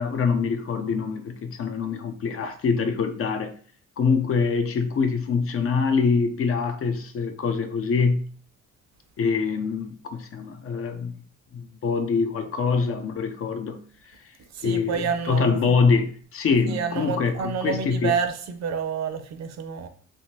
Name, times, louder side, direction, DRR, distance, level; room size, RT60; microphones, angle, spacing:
voice 1, 0.0-3.5 4.0-8.3 9.2-11.1 11.5-13.8 14.6-18.1, left 5 dB, 50° left, 0.5 m, -24 dB
voice 2, 14.5-15.8 16.7-19.9, right 6 dB, 60° right, 0.6 m, -29 dB
3.5 x 2.5 x 2.7 m
cardioid pair, 90°, 30 cm